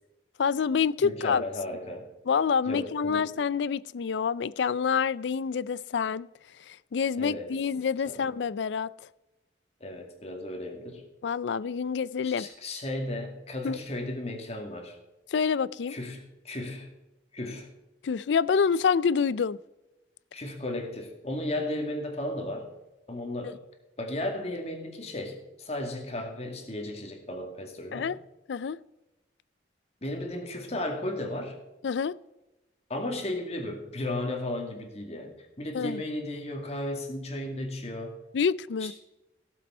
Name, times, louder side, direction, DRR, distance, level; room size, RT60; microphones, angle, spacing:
voice 1, 0.4-1.4 2.3-6.3 6.7-8.9 11.2-12.5 13.6-13.8 15.3-16.0 18.0-19.6 23.4-23.5 27.9-28.2 28.5-28.8 31.8-32.1 35.7-36.0 38.3-38.9, left 6 dB, 75° left, 20 dB, 0.4 m, -27 dB
voice 2, 1.0-2.1 2.7-3.3 7.2-7.5 8.1-8.3 9.8-11.1 12.2-15.0 15.9-16.9 17.3-17.7 20.3-22.7 23.1-23.6 24.0-28.1 30.0-31.6 32.9-38.2 38.8-38.9, left 1 dB, 35° left, 3 dB, 2.2 m, -35 dB
17.0 x 7.5 x 4.4 m, 1.0 s
head